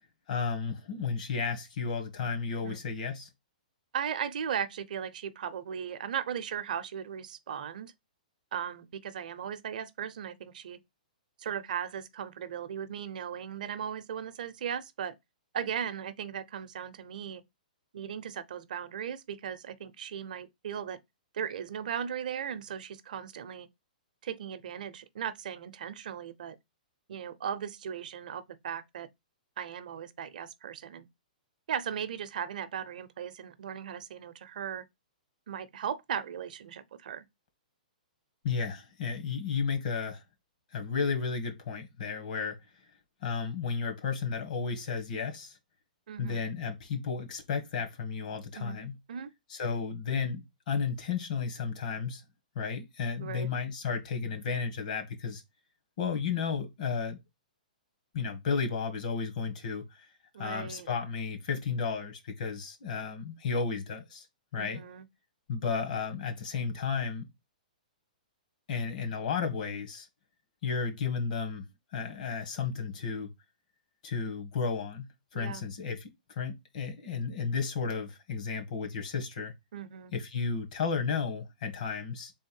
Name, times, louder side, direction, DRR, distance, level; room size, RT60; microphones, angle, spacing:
voice 1, 0.3-3.3 38.4-40.2 40.7-42.6 43.2-45.6 46.2-48.9 49.5-52.2 52.5-55.4 56.0-57.2 58.1-60.1 60.4-64.3 64.5-64.8 65.5-67.3 68.7-70.1 70.6-71.6 71.9-73.3 74.0-76.1 76.3-79.5 80.1-82.3, left 5 dB, 65° left, 1.5 m, -33 dB
voice 2, 3.9-7.9 8.5-10.8 11.4-15.1 15.5-17.4 17.9-21.0 21.3-23.7 24.2-26.6 27.1-29.1 29.6-31.1 31.7-34.8 35.5-37.3 46.1-46.4 48.6-48.8 49.1-49.3 53.2-53.5 60.3-60.9 64.6-65.0 75.3-75.6 79.7-80.1, right 8 dB, 65° right, 0.6 m, -37 dB
3.5 x 3.2 x 4.5 m
hypercardioid pair, 150°, 5 cm